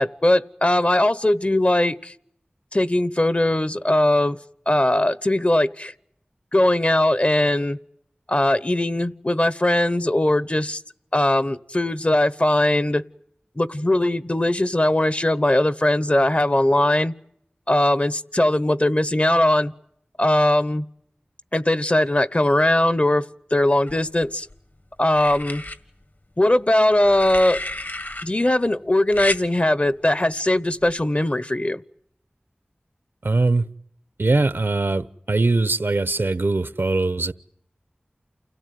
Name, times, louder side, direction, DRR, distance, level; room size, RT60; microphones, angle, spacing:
voice 1, 0.0-2.1 2.7-4.4 4.7-5.9 6.5-7.8 8.3-10.8 11.1-13.0 13.6-17.1 17.7-19.7 20.2-20.8 21.5-23.2 23.5-24.5 25.0-25.6 26.4-27.6 28.2-31.8, left 1 dB, 35° left, 1.0 m, -20 dB
sound 1, 23.9-24.5 25.1-25.8 26.9-28.3 29.1-29.4 30.8-31.0, left 2 dB, 60° left, 2.0 m, -31 dB
voice 2, 33.2-33.7 34.2-37.3, right 3 dB, 75° right, 1.1 m, -21 dB
29.5 x 17.0 x 9.4 m
wide cardioid pair, 45°, 4 cm